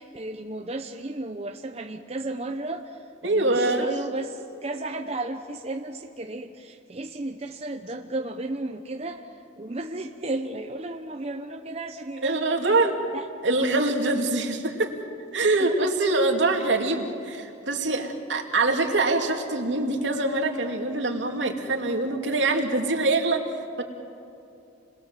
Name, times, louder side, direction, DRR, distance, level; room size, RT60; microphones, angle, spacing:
voice 1, 0.0-12.8 13.1-13.3 15.6-15.9, right 2 dB, 35° right, 4 dB, 0.9 m, -34 dB
voice 2, 3.2-3.9 12.2-12.9 13.4-14.9 15.3-23.8, right 2 dB, 75° right, 2 dB, 2.7 m, -24 dB
29.5 x 21.5 x 7.6 m, 2.7 s
head